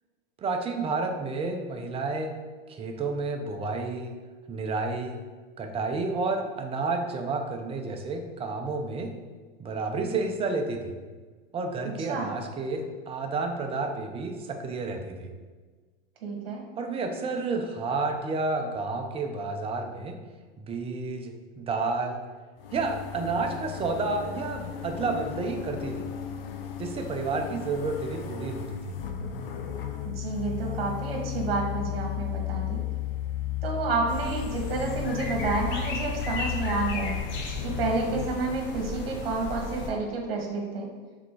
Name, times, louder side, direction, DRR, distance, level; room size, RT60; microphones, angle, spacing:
voice 1, 0.4-2.3 2.7-4.1 4.5-5.2 5.6-9.1 9.6-10.9 11.5-15.3 16.8-20.2 20.6-22.2 22.7-26.1 26.8-28.9, right 3 dB, 20° right, 3 dB, 0.8 m, -30 dB
voice 2, 11.8-12.3 16.2-16.6 30.0-32.8 33.6-37.2 37.6-40.9, right 3 dB, 75° right, 0 dB, 1.8 m, -30 dB
sound 1, 22.6-38.3, left 12 dB, 70° left, 0.9 m, -35 dB
sound 2, 34.1-39.9, left 3 dB, 40° left, 1.1 m, -35 dB
6.0 x 3.8 x 4.7 m, 1.4 s
hypercardioid pair, 125°, 29 cm